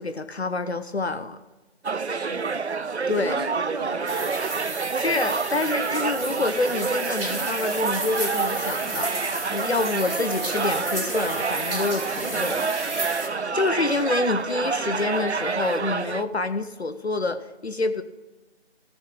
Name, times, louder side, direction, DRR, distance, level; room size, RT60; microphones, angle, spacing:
voice 1, 0.0-1.4 3.1-3.4 4.9-12.7 13.5-18.0, left 3 dB, 70° left, 10 dB, 0.9 m, -27 dB
sound 1, 1.8-16.2, right 4 dB, 75° right, 0.7 m, -28 dB
voice 2, 2.1-2.5 3.1-4.4 9.8-10.1 14.2-14.5, right 2 dB, 35° right, 2 dB, 2.3 m, -37 dB
sound 2, 4.1-13.3, right 2 dB, 55° right, 2.8 m, -33 dB
sound 3, 7.4-14.2, right 1 dB, 10° left, 1.3 m, -47 dB
13.5 x 7.3 x 8.5 m, 1.1 s
figure-of-eight pair, 160°, 34 cm